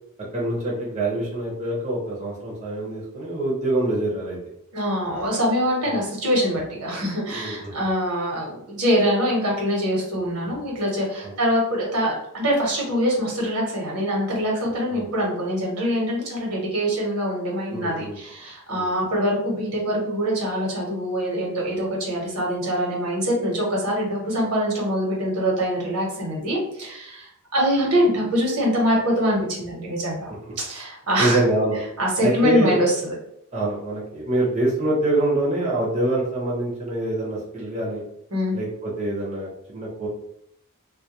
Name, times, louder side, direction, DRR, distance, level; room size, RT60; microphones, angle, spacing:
voice 1, 0.3-4.4 5.9-6.0 7.3-7.7 11.2-11.3 14.9-15.1 17.7-18.2 18.7-18.9 30.5-30.6 31.2-31.8 32.2-32.8 33.5-38.0 38.5-40.1, right 1 dB, 30° right, -5 dB, 0.6 m, -25 dB
voice 2, 4.7-31.4 32.0-33.2 38.3-38.6, equal, 75° right, -2 dB, 1.0 m, -24 dB
2.2 x 2.2 x 2.8 m, 0.76 s
head